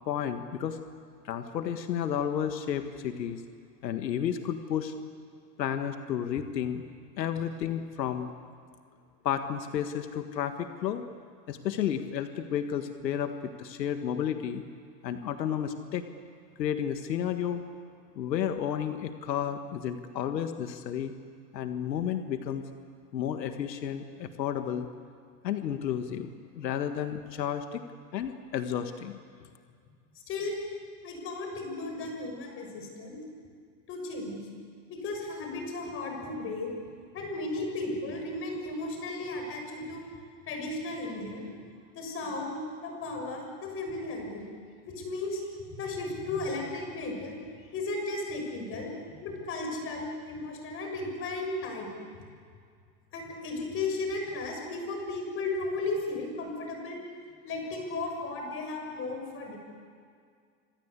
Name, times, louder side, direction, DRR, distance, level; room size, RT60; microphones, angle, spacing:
voice 1, 0.1-0.8 1.2-3.4 3.8-4.9 5.6-6.8 7.2-8.3 9.2-11.1 11.5-14.6 15.0-16.0 16.6-17.6 18.2-21.1 21.5-22.6 23.1-24.9 25.4-26.3 26.6-27.8 28.1-29.2, left 9 dB, 90° left, 7 dB, 1.8 m, -32 dB
voice 2, 31.0-33.2 33.9-34.5 34.9-36.7 37.1-40.0 40.5-41.5 41.9-44.4 44.8-45.4 45.7-47.4 47.7-48.9 49.2-51.9 53.1-57.0 57.4-59.6, left 2 dB, 25° left, 2 dB, 6.5 m, -35 dB
27.5 x 25.5 x 8.4 m, 2.2 s
supercardioid pair, 155°, 49 cm